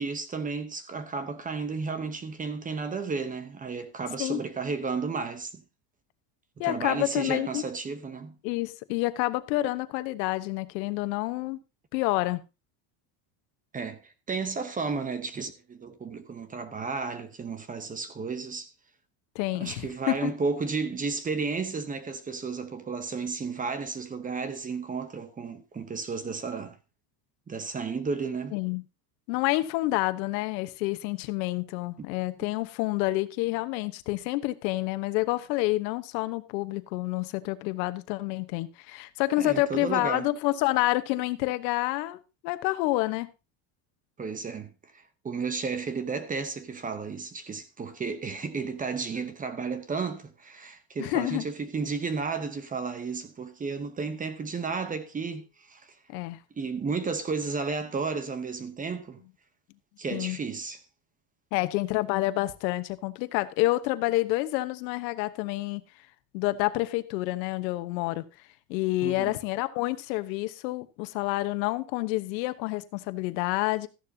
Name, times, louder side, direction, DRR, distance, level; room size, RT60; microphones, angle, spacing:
voice 1, 0.0-5.6 6.6-8.4 13.7-18.7 19.5-26.8 27.5-28.6 39.4-40.3 44.2-55.9 56.6-59.2 60.0-60.8 69.0-69.3, right 4 dB, 15° right, 0.8 m, -33 dB
voice 2, 6.6-7.6 8.4-11.6 11.9-12.4 19.3-20.3 28.5-28.8 29.3-42.2 42.4-43.3 51.0-51.4 56.1-56.4 60.1-60.4 61.5-65.8 66.3-68.3 68.7-73.9, left 18 dB, 85° left, 1.2 m, -28 dB
14.0 x 10.5 x 2.8 m
cardioid pair, 150°, 50 cm